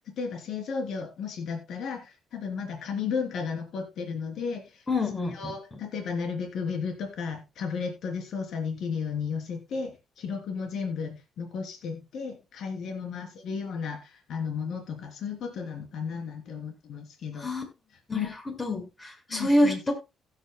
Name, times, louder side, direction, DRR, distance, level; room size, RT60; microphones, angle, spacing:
voice 1, 0.2-4.8 5.3-9.9 10.2-17.5 18.1-18.3 19.3-19.9, left 5 dB, 75° left, 3 dB, 3.2 m, -34 dB
voice 2, 4.9-5.5 17.3-17.6 18.1-19.9, left 1 dB, 25° left, 3 dB, 5.2 m, -27 dB
16.5 x 9.1 x 2.2 m, 0.26 s
cardioid pair, 90°, 0 cm